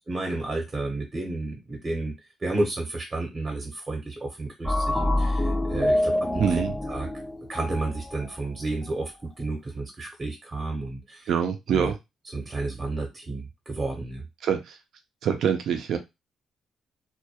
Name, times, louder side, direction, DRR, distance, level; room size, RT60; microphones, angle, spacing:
voice 1, 0.1-2.1 2.4-7.1 7.5-9.1 9.4-11.3 11.7-11.9 12.3-14.2, right 2 dB, 30° right, 2 dB, 0.7 m, -31 dB
sound 1, 4.6-8.3, left 1 dB, 5° left, 0.4 m, -26 dB
voice 2, 6.4-6.7 11.3-12.0 14.4-14.8 15.2-16.0, right 7 dB, 70° right, 7 dB, 0.4 m, -25 dB
2.2 x 2.1 x 2.8 m, 0.22 s
cardioid pair, 90°, 0 cm